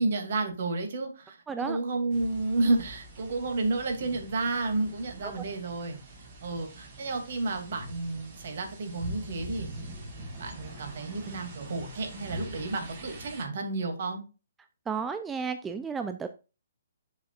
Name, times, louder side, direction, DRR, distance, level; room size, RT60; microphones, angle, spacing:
voice 1, 0.0-6.0 6.4-9.7 10.4-14.2, right 3 dB, 55° right, 5 dB, 2.6 m, -31 dB
voice 2, 1.5-1.8 5.2-5.3 14.9-16.3, right 5 dB, 10° right, 8 dB, 0.5 m, -32 dB
sound 1, 2.1-13.4, right 1 dB, 35° right, 4.7 m, -44 dB
8.5 x 7.2 x 2.5 m, 0.30 s
figure-of-eight pair, 130°, 0 cm